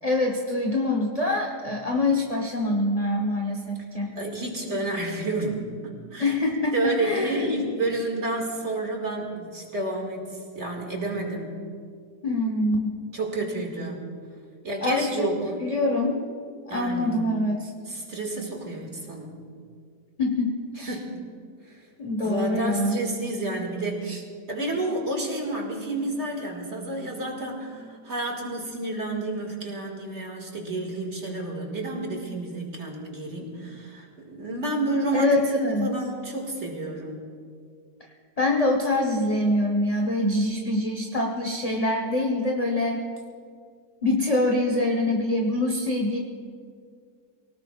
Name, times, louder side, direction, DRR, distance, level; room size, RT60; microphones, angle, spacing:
voice 1, 0.0-4.1 6.2-7.6 12.2-13.0 14.8-15.3 15.6-16.2 16.7-17.7 20.2-20.9 22.0-22.9 24.1-24.2 35.1-36.0 38.0-38.1 38.4-43.1 44.0-46.2, left 1 dB, 25° left, 0 dB, 1.1 m, -25 dB
voice 2, 4.2-6.4 6.7-11.6 13.1-14.0 14.6-15.6 16.7-17.2 17.8-19.3 20.8-21.2 21.7-21.9 22.2-24.2 24.5-35.3 35.6-37.2, right 2 dB, 40° right, 1 dB, 2.4 m, -30 dB
24.5 x 18.0 x 2.5 m, 2.1 s
omnidirectional pair, 1.8 m